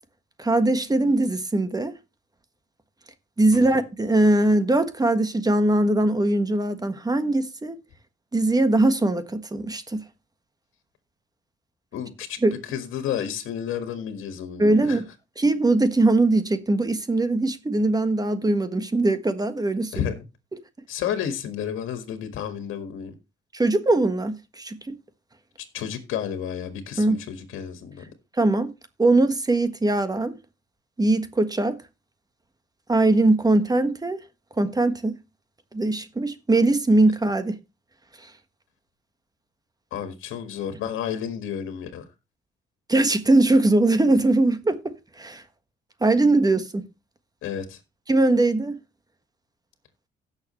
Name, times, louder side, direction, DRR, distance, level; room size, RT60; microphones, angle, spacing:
voice 1, 0.4-1.9 3.4-7.7 8.3-10.0 12.4-12.6 14.6-15.1 15.4-20.0 23.5-25.0 27.0-27.2 28.3-28.7 29.0-30.4 31.0-31.8 32.9-34.2 34.6-35.2 35.7-37.6 38.2-38.3 42.9-45.4 46.0-46.8 48.1-48.8, right 2 dB, 20° right, 1.4 m, -21 dB
voice 2, 11.9-12.4 12.7-15.0 19.9-20.2 20.9-23.1 25.7-28.0 39.9-42.0 47.4-47.8, left 9 dB, 85° left, 1.8 m, -31 dB
17.0 x 6.7 x 3.1 m
cardioid pair, 90°, 20 cm